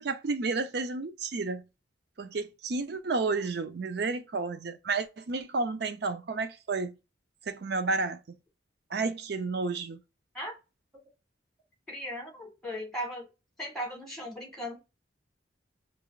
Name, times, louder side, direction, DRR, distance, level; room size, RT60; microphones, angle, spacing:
voice 1, 0.0-1.6 2.2-6.9 7.5-8.2 8.9-10.0, right 3 dB, 60° right, 0.5 m, -31 dB
voice 2, 11.9-13.3 13.6-14.8, equal, ahead, 1.5 m, -37 dB
4.8 x 2.4 x 2.3 m
head